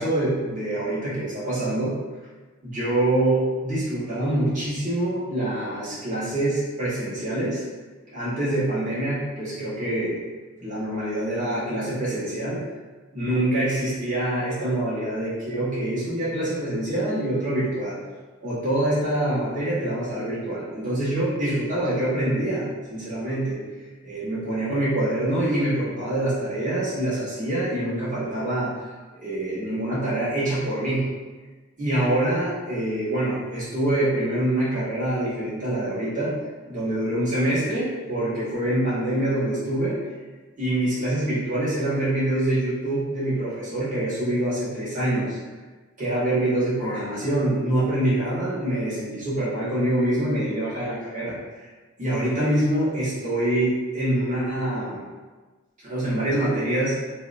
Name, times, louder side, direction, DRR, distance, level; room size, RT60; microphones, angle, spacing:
voice 1, 0.0-2.0 2.6-7.6 8.1-10.2 10.6-12.6 13.1-18.0 18.4-23.6 24.0-28.7 29.2-31.1 31.8-36.3 36.6-40.0 40.6-45.4 46.0-51.4 52.0-55.0 55.8-57.0, right 1 dB, 40° right, -10 dB, 1.3 m, -25 dB
3.1 x 2.8 x 2.5 m, 1.3 s
head